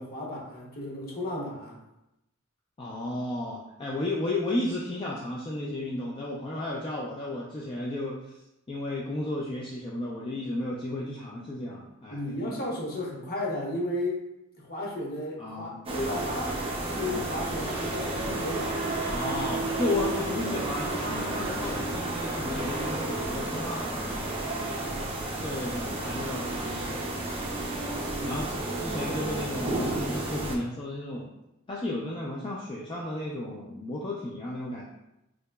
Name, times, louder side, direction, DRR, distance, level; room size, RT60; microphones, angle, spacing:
voice 1, 0.0-1.8 12.1-14.2 14.6-16.7 17.0-18.8 24.6-25.1 28.2-28.5, left 1 dB, 45° left, -3 dB, 0.8 m, -34 dB
voice 2, 2.8-8.4 8.7-12.5 15.4-15.8 19.1-23.9 25.4-27.0 28.2-31.3 31.7-34.8, left 2 dB, 25° left, -4 dB, 0.3 m, -33 dB
sound 1, 15.9-30.6, right 2 dB, 30° right, 0.6 m, -31 dB
3.7 x 2.8 x 2.2 m, 0.90 s
head